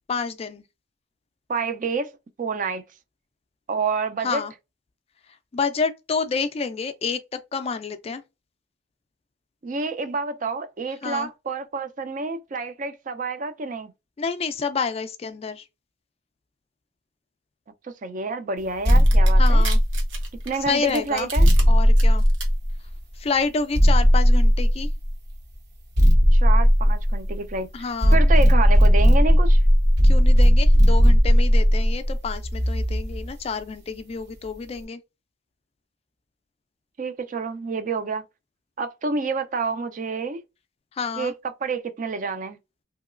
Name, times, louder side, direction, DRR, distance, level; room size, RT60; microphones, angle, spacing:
voice 1, 0.1-0.6 4.2-4.5 5.5-8.2 11.0-11.3 14.2-15.6 19.4-19.8 20.7-21.3 21.7-22.2 23.2-24.9 27.7-28.2 30.0-35.0 41.0-41.3, left 5 dB, 30° left, 0.3 m, -28 dB
voice 2, 1.5-2.1 2.4-2.8 3.7-4.4 9.6-13.9 17.8-19.7 20.5-21.5 26.3-29.6 37.0-38.2 38.8-40.4 41.2-42.6, right 4 dB, 40° right, 0.4 m, -28 dB
sound 1, 18.8-20.3 21.4-23.0 23.7-25.1 26.0-27.6 28.0-33.3, equal, 60° right, 0.9 m, -16 dB
sound 2, 18.9-21.6 22.0-22.5, right 6 dB, 80° right, 1.0 m, -34 dB
3.0 x 2.8 x 2.4 m
head